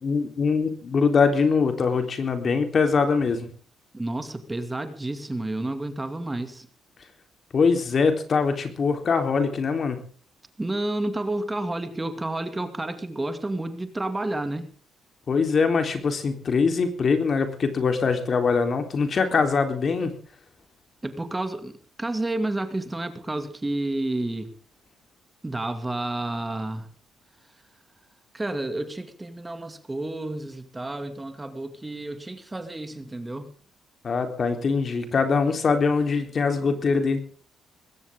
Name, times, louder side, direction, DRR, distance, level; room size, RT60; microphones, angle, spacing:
voice 1, 0.0-3.5 7.5-10.0 15.3-20.1 34.0-37.2, left 5 dB, 45° left, 6 dB, 3.8 m, -23 dB
voice 2, 3.9-6.7 10.6-14.7 21.0-24.5 25.4-26.9 28.3-33.5, right 2 dB, 15° right, 8 dB, 2.4 m, -30 dB
20.5 x 16.5 x 3.8 m, 0.42 s
cardioid pair, 90°, 0 cm